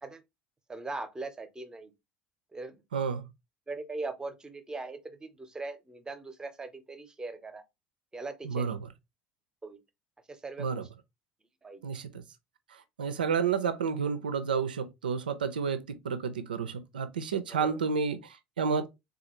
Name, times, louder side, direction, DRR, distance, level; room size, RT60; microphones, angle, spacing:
voice 1, 0.7-1.9 2.5-2.8 3.7-7.6 8.1-8.7 9.6-9.8 10.3-10.8 11.6-11.9 17.5-17.8, right 3 dB, 15° right, 0.7 m, -40 dB
voice 2, 2.9-3.2 8.4-8.8 10.6-10.8 11.8-12.2 12.7-18.9, right 6 dB, 75° right, 0.3 m, -31 dB
4.0 x 2.3 x 2.9 m
figure-of-eight pair, 65°, 5 cm